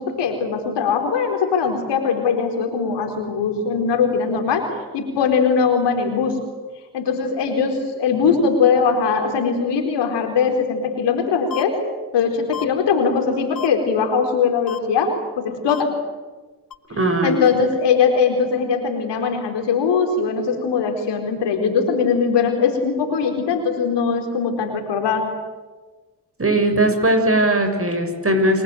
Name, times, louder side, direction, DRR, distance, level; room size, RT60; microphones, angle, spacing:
voice 1, 0.0-6.4 6.9-11.8 12.1-15.9 17.2-25.3, left 5 dB, 80° left, 5 dB, 4.4 m, -20 dB
sound 1, 11.5-11.6 12.5-12.6 13.5-13.7 14.7-14.8 15.7-15.8 16.7-16.8, left 9 dB, 55° left, 1.6 m, -30 dB
voice 2, 17.0-17.4 26.4-28.6, right 1 dB, 35° right, 6 dB, 6.9 m, -19 dB
27.5 x 20.0 x 9.2 m, 1.3 s
hypercardioid pair, 40°, 41 cm